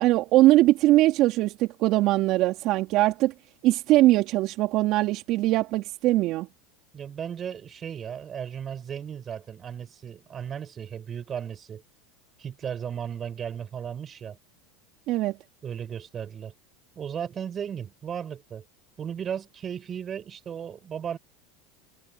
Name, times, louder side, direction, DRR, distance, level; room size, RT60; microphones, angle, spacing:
voice 1, 0.0-3.3 3.6-6.5 15.1-15.4, right 17 dB, 55° right, 3.2 m, -21 dB
voice 2, 6.9-11.8 12.4-14.4 15.6-16.5 17.0-18.6 19.0-21.2, right 8 dB, 30° right, 7.5 m, -35 dB
hypercardioid pair, 105°, 0 cm